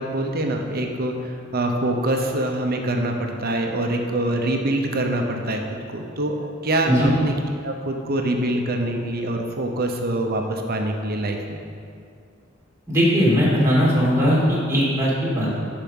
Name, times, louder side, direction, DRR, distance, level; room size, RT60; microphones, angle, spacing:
voice 1, 0.0-5.6 5.9-6.4 6.6-7.3 7.6-11.6, right 1 dB, 50° right, 3 dB, 0.9 m, -24 dB
voice 2, 12.9-15.6, equal, 15° right, -7 dB, 2.2 m, -19 dB
10.5 x 4.9 x 5.5 m, 2.3 s
head